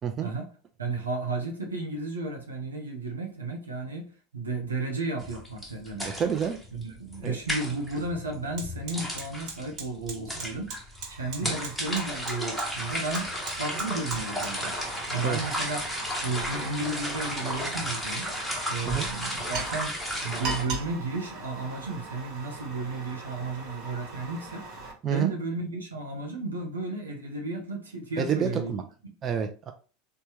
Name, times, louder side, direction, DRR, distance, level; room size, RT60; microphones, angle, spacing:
voice 1, 0.2-0.5 0.8-6.1 6.7-14.7 15.1-15.8 16.2-18.3 18.7-24.7 25.0-28.7, right 3 dB, 85° right, 0.7 m, -33 dB
sound 1, 5.2-20.6, equal, ahead, 0.9 m, -34 dB
voice 2, 6.2-6.6 7.2-7.3 11.4-11.5 15.2-15.4 18.8-19.1 25.0-25.3 28.2-28.8 29.2-29.7, right 8 dB, 35° right, 0.4 m, -28 dB
Fire, 7.4-7.6 7.9-24.9, right 3 dB, 50° right, 1.1 m, -40 dB
3.3 x 2.2 x 3.0 m
figure-of-eight pair, 80°, 0 cm